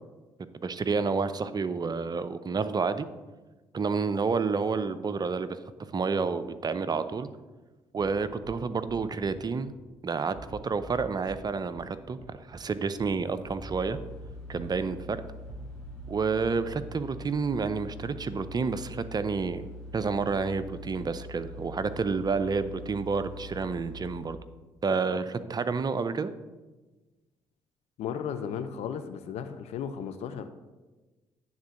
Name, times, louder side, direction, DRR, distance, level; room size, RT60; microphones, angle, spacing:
voice 1, 0.5-3.1 3.7-5.5 5.9-7.3 7.9-9.7 10.0-14.0 14.5-15.2 16.1-19.6 19.9-24.4 24.8-26.3, right 4 dB, 35° right, 12 dB, 0.6 m, -29 dB
sound 1, 8.0-17.9, right 2 dB, 50° right, 1.3 m, -49 dB
sound 2, 13.6-24.2, left 1 dB, 5° left, 2.8 m, -44 dB
voice 2, 28.0-30.5, left 7 dB, 65° left, 9 dB, 0.6 m, -35 dB
9.5 x 3.8 x 6.3 m, 1.2 s
hypercardioid pair, 45°, 12 cm